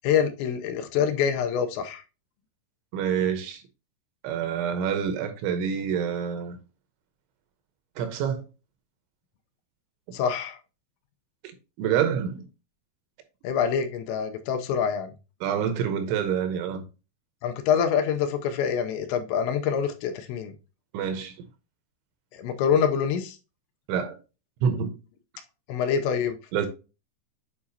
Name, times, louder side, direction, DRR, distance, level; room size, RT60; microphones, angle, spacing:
voice 1, 0.0-2.0 10.1-10.6 13.4-15.1 17.4-20.5 22.3-23.4 25.7-26.4, left 7 dB, 85° left, 2.8 m, -25 dB
voice 2, 2.9-3.6 4.2-6.6 8.0-8.4 11.8-12.5 15.4-16.8 20.9-21.3 23.9-24.2 24.6-24.9 26.5-26.7, right 8 dB, 85° right, 3.4 m, -27 dB
8.5 x 4.7 x 2.8 m
omnidirectional pair, 5.3 m